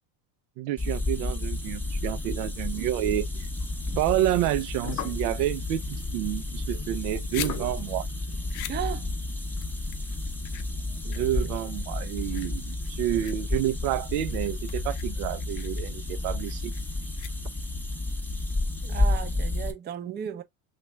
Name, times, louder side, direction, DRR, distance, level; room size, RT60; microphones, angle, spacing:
voice 1, 0.6-3.3 4.0-8.1 11.0-16.7, right 14 dB, 75° right, 0.6 m, -29 dB
sound 1, 0.8-19.7, left 2 dB, 5° left, 0.8 m, -31 dB
sound 2, 2.7-3.8 4.4-9.0, left 8 dB, 40° left, 0.9 m, -42 dB
sound 3, 6.9-17.8, left 13 dB, 55° left, 0.6 m, -44 dB
voice 2, 8.7-9.0 18.8-20.4, right 9 dB, 25° right, 0.6 m, -34 dB
3.0 x 2.5 x 4.2 m
supercardioid pair, 110°, 44 cm